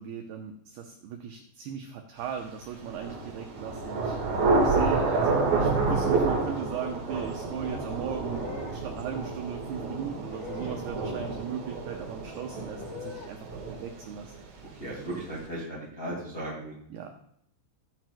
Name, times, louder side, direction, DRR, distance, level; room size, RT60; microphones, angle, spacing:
voice 1, 0.0-4.2 4.6-14.3 16.9-17.1, right 7 dB, 90° right, 4 dB, 2.2 m, -37 dB
Thunder / Rain, 2.8-14.4, right 3 dB, 60° right, 2.1 m, -29 dB
sound 1, 8.2-8.8 10.3-10.8 12.6-13.3, left 8 dB, 75° left, 1.8 m, -43 dB
voice 2, 14.8-16.7, right 1 dB, 40° left, -5 dB, 1.1 m, -36 dB
17.5 x 7.9 x 2.2 m, 0.69 s
omnidirectional pair, 5.5 m